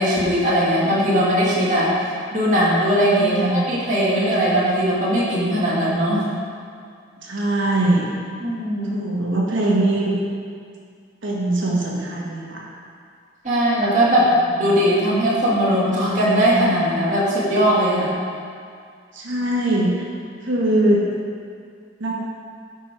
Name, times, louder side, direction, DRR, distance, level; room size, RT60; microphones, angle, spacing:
voice 1, 0.0-6.2 8.4-9.1 13.4-14.3 14.6-18.1, equal, 35° right, -7 dB, 2.1 m, -19 dB
voice 2, 3.1-3.7 7.2-8.1 8.9-10.1 11.2-12.6 19.1-20.1 20.4-21.0 22.0-22.1, right 1 dB, 60° right, -3 dB, 1.5 m, -21 dB
11.0 x 4.7 x 4.9 m, 2.2 s
head